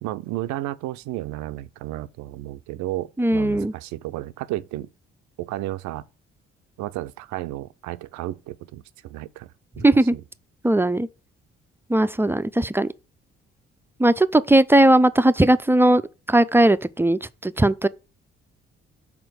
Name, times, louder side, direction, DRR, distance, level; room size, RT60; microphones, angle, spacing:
voice 1, 0.0-4.9 5.4-6.0 6.8-9.5 9.8-9.9 10.1-10.2, right 15 dB, 75° right, 0.5 m, -32 dB
voice 2, 3.2-3.7 9.8-10.1 10.6-11.1 11.9-12.9 14.0-16.0 16.3-17.9, right 1 dB, 10° right, 0.5 m, -18 dB
6.0 x 4.3 x 6.4 m
hypercardioid pair, 50°, 29 cm